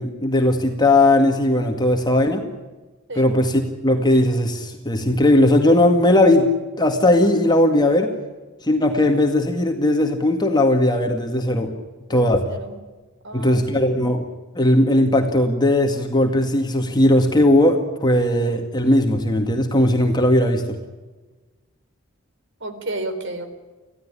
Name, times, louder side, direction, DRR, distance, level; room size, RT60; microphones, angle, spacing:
voice 1, 0.0-2.5 3.2-6.5 6.8-8.1 8.6-11.7 12.1-12.4 13.3-14.3 14.6-20.8, left 1 dB, 20° left, 3 dB, 2.0 m, -18 dB
voice 2, 12.1-12.8 13.2-13.9 22.6-23.5, right 2 dB, 60° right, 9 dB, 3.9 m, -32 dB
26.0 x 16.5 x 10.0 m, 1.3 s
head